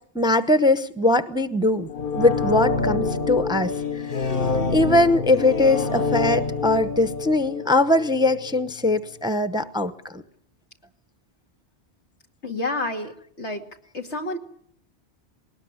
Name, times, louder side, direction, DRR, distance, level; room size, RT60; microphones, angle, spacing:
voice 1, 0.1-1.9 2.1-3.7 4.1-4.3 4.7-10.2, left 2 dB, 5° right, 12 dB, 0.8 m, -21 dB
sound 1, 1.9-8.7 9.0-9.1, left 4 dB, 50° left, 1.4 m, -27 dB
Human voice, 2.3-2.4 3.7-4.9 5.3-6.3, left 4 dB, 35° left, 1.6 m, -37 dB
voice 2, 12.4-13.7 13.9-14.4, left 2 dB, 80° left, 3 dB, 2.7 m, -29 dB
20.5 x 19.0 x 9.7 m, 0.63 s
omnidirectional pair, 1.1 m